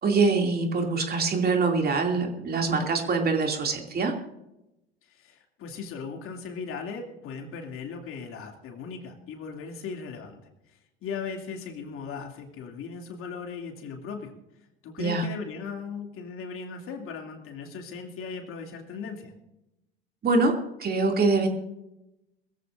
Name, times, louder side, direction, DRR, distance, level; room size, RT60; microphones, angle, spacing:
voice 1, 0.0-4.1 15.0-15.2 20.2-21.5, right 3 dB, 30° right, 3 dB, 2.6 m, -24 dB
voice 2, 5.0-10.4 10.7-14.3 14.8-19.3, left 5 dB, 45° left, 3 dB, 2.6 m, -38 dB
22.0 x 15.5 x 2.6 m, 0.91 s
figure-of-eight pair, 70°, 31 cm